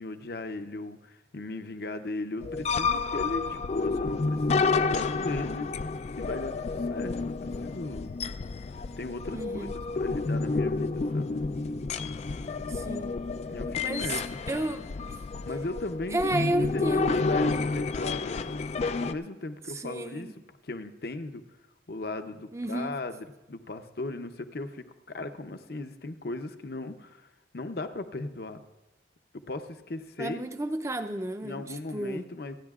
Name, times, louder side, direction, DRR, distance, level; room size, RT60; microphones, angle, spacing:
voice 1, 0.0-5.7 6.2-8.1 9.0-9.7 10.0-11.4 13.4-14.2 15.5-16.9 17.1-18.5 19.0-20.3 20.6-21.4 21.9-27.3 27.5-28.6 29.3-30.5 31.4-32.6, left 2 dB, 55° left, 8 dB, 0.7 m, -37 dB
sound 1, 2.4-19.1, left 4 dB, 35° left, 0.3 m, -30 dB
voice 2, 9.3-9.7 12.7-13.1 13.8-14.2 14.5-15.2 16.1-17.2 19.7-20.3 22.5-23.0 30.2-32.3, right 1 dB, 15° right, 9 dB, 0.6 m, -32 dB
28.0 x 9.7 x 2.4 m, 1.0 s
head